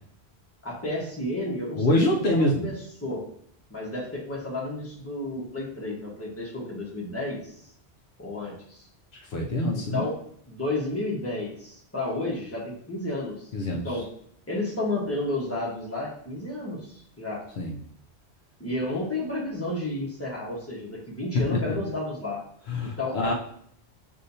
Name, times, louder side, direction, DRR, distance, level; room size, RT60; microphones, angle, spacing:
voice 1, 0.6-2.7 3.0-3.2 3.7-7.5 8.2-8.8 9.9-10.2 10.5-14.1 14.5-17.4 18.6-22.4 22.8-23.3, left 2 dB, 15° left, -5 dB, 1.2 m, -32 dB
voice 2, 1.8-2.7 9.1-10.1 13.5-14.0 17.6-17.8 22.7-23.3, left 1 dB, 70° left, 0 dB, 0.8 m, -25 dB
6.4 x 2.7 x 2.7 m, 0.64 s
omnidirectional pair, 1.1 m